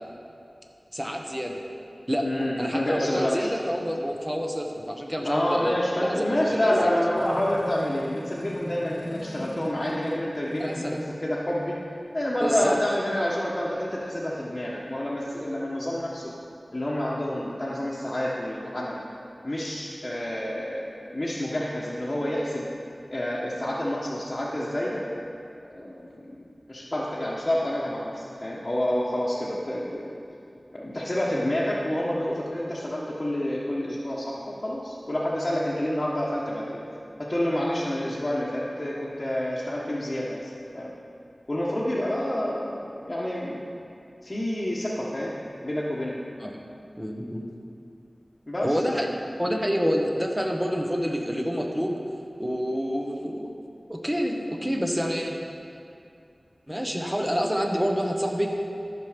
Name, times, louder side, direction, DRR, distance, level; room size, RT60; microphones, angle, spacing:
voice 1, 0.9-1.6 2.1-2.3 2.6-6.7 10.6-11.0 12.4-12.8 46.4-46.6 47.0-47.4 48.6-49.1 49.4-52.0 52.4-53.5 53.9-55.4 56.7-58.5, equal, 10° right, 1 dB, 1.2 m, -27 dB
voice 2, 2.2-3.5 5.2-11.8 12.1-16.3 16.7-19.0 19.4-22.7 23.1-25.0 25.7-26.1 26.5-30.1 30.7-36.8 37.2-40.9 41.5-43.6 44.2-45.4 45.6-46.1 48.5-48.8, left 1 dB, 35° left, -8 dB, 1.3 m, -28 dB
sound 1, 7.1-11.1, left 1 dB, 70° left, 0.9 m, -39 dB
13.5 x 6.1 x 5.2 m, 2.5 s
wide cardioid pair, 60°, 0 cm